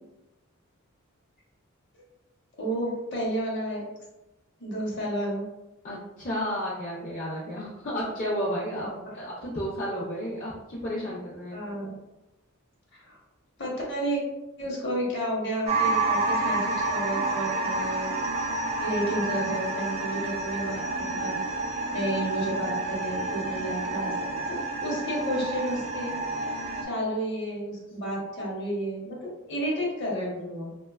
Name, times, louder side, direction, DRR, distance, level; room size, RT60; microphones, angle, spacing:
voice 1, 2.6-3.8 4.6-5.5 11.5-11.9 12.9-13.2 13.6-14.2 14.6-18.1 18.8-21.4 21.9-26.2 26.8-30.7, right 1 dB, 55° left, -3 dB, 0.8 m, -31 dB
voice 2, 5.8-11.6, equal, 40° left, -7 dB, 0.5 m, -32 dB
sound 1, 15.7-26.8, right 2 dB, 30° right, 0.3 m, -29 dB
2.9 x 2.2 x 2.2 m, 0.98 s
head